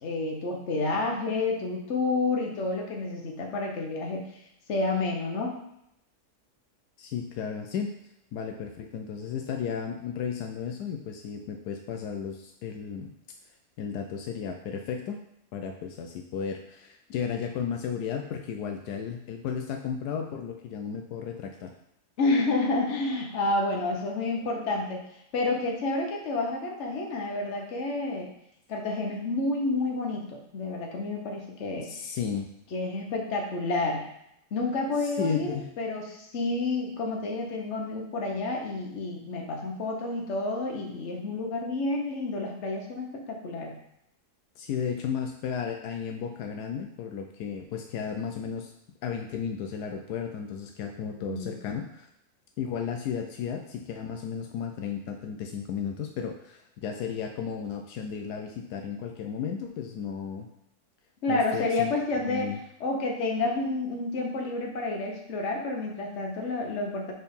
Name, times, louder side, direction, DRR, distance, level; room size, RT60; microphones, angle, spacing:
voice 1, 0.0-4.3 4.7-5.5 22.2-25.0 25.3-28.3 28.7-32.1 32.7-34.1 34.5-43.8 50.9-51.6 61.2-62.5 62.8-67.1, left 2 dB, 50° left, 0 dB, 1.2 m, -29 dB
voice 2, 7.0-7.9 8.3-13.1 13.8-15.2 15.5-21.7 31.8-32.5 35.2-35.7 44.6-48.7 49.0-52.1 52.6-60.5 61.3-62.6, left 7 dB, 80° left, 4 dB, 1.1 m, -34 dB
4.4 x 4.0 x 5.2 m, 0.79 s
omnidirectional pair, 1.7 m